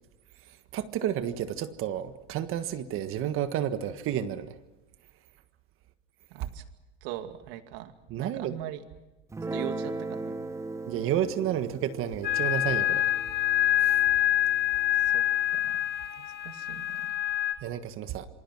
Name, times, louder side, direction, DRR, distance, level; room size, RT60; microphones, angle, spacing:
voice 1, 0.5-4.6 8.1-8.5 10.9-13.1 13.8-14.0 17.6-18.3, right 10 dB, 40° right, 10 dB, 1.6 m, -31 dB
voice 2, 6.3-6.6 7.0-8.8 9.5-10.4 15.0-15.2 15.5-15.8 16.2-17.1, right 12 dB, 60° right, 8 dB, 2.4 m, -41 dB
Guitar, 9.3-15.9, right 3 dB, 10° right, 0.9 m, -39 dB
sound 1, 12.2-17.5, left 13 dB, 30° left, 3.0 m, -26 dB
27.5 x 23.0 x 6.2 m, 1.1 s
supercardioid pair, 130°, 33 cm